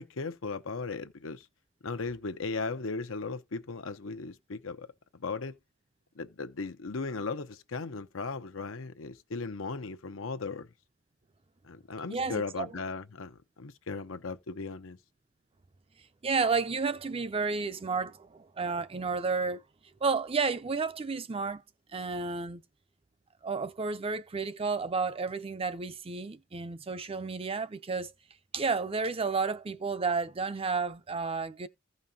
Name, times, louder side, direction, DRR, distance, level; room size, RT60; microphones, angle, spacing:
voice 1, 0.0-1.5 1.8-4.9 5.1-5.6 6.2-10.7 11.6-15.0, left 4 dB, 80° left, 0.8 m, -37 dB
voice 2, 12.1-12.7 16.2-19.6 20.0-21.6 21.9-22.6 23.4-28.1 28.5-31.7, right 4 dB, 30° right, 0.5 m, -31 dB
15.5 x 5.3 x 2.8 m
head